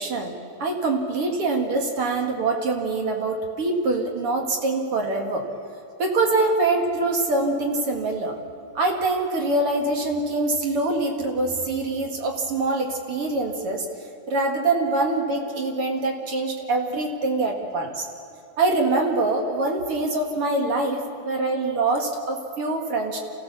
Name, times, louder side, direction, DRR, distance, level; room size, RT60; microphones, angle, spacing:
voice 1, 0.0-5.4 6.0-8.4 8.7-13.9 14.3-18.1 18.6-23.2, right 2 dB, 45° right, 2 dB, 2.4 m, -24 dB
28.5 x 15.5 x 7.1 m, 2.6 s
omnidirectional pair, 4.1 m